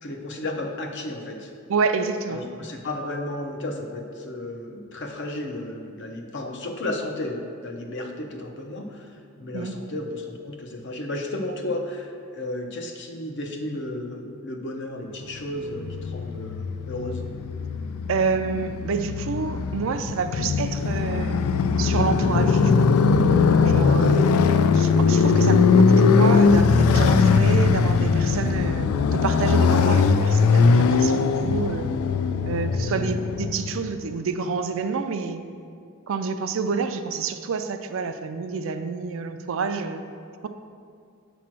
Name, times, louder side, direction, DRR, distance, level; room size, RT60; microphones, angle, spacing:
voice 1, 0.0-1.5 2.3-17.2 23.9-24.2, left 1 dB, 55° left, 3 dB, 0.8 m, -33 dB
voice 2, 1.7-2.4 9.5-9.8 18.1-21.4 21.8-22.9 23.6-24.3 24.7-31.9 32.5-35.4 36.1-40.0, right 5 dB, 65° right, 8 dB, 0.4 m, -28 dB
Motorcycle, 15.7-33.9, left 5 dB, 80° left, 0.3 m, -20 dB
8.3 x 3.0 x 6.0 m, 2.3 s
head